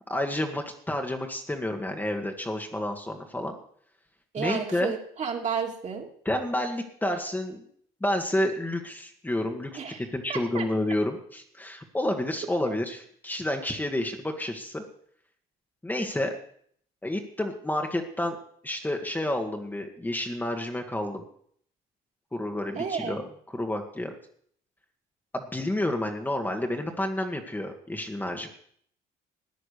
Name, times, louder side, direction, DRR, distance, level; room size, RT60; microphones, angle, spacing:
voice 1, 0.1-3.6 4.4-4.9 6.2-7.6 8.0-14.8 15.8-16.3 17.0-18.4 18.6-21.2 22.3-24.1 25.3-28.5, left 1 dB, 10° left, 3 dB, 1.7 m, -30 dB
voice 2, 4.3-6.1 9.7-10.0 10.3-10.7 12.6-12.7 22.7-23.2, right 6 dB, 45° right, 1 dB, 2.9 m, -32 dB
15.0 x 9.8 x 6.7 m, 0.63 s
cardioid pair, 110°, 17 cm